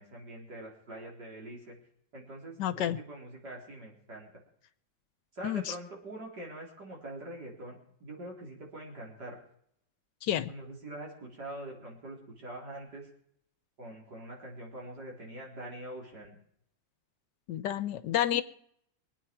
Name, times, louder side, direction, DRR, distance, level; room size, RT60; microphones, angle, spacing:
voice 1, 0.0-1.8 2.1-4.3 5.3-9.4 10.5-13.1 13.8-16.4, right 1 dB, 60° right, -2 dB, 4.6 m, -44 dB
voice 2, 2.6-3.0 5.4-5.6 10.2-10.5 17.5-18.4, left 11 dB, 75° left, 13 dB, 1.4 m, -29 dB
24.5 x 9.1 x 4.7 m, 0.69 s
omnidirectional pair, 2.0 m